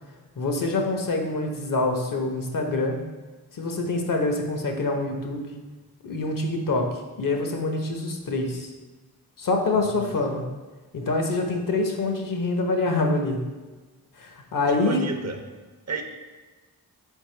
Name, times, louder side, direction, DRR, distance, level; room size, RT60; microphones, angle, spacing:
voice 1, 0.4-3.0 3.5-5.4 6.0-8.7 9.4-10.5 10.9-13.4 14.2-15.1, left 2 dB, 60° left, 3 dB, 0.7 m, -25 dB
voice 2, 14.7-15.4 15.9-16.0, right 4 dB, 45° right, 5 dB, 0.6 m, -32 dB
4.1 x 3.5 x 3.1 m, 1.2 s
cardioid pair, 45°, 37 cm